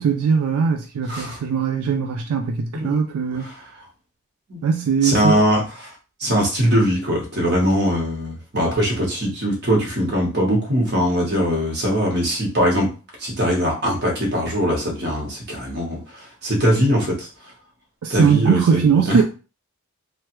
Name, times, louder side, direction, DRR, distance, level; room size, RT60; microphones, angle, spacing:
voice 1, 0.0-3.5 4.6-5.4 18.0-19.2, right 6 dB, 80° right, 0.3 m, -20 dB
voice 2, 1.1-1.4 2.7-2.9 3.3-3.6 4.5-4.6 5.0-5.9 6.2-12.9 13.2-17.3 18.1-19.2, equal, 45° right, 1.2 m, -21 dB
3.2 x 2.2 x 3.0 m
head